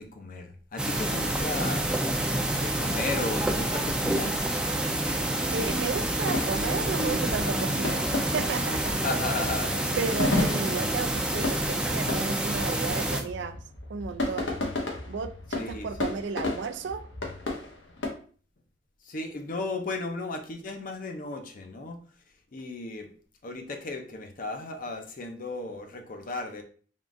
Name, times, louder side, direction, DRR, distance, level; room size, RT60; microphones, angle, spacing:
voice 1, 0.0-1.9 2.3-4.3 9.0-9.9 15.5-16.1 19.0-22.0 22.5-23.1 23.4-26.6, left 2 dB, 50° left, 5 dB, 0.6 m, -35 dB
sound 1, 0.8-13.2, right 1 dB, 5° right, 0.4 m, -28 dB
sound 2, 4.6-11.4, right 2 dB, 40° right, 0.8 m, -40 dB
sound 3, 4.7-18.1, left 2 dB, 90° left, 1.0 m, -34 dB
voice 2, 5.5-9.1 10.0-13.6 13.9-14.5 15.1-17.1, right 5 dB, 70° right, 12 dB, 0.4 m, -33 dB
3.7 x 2.4 x 3.7 m, 0.43 s
head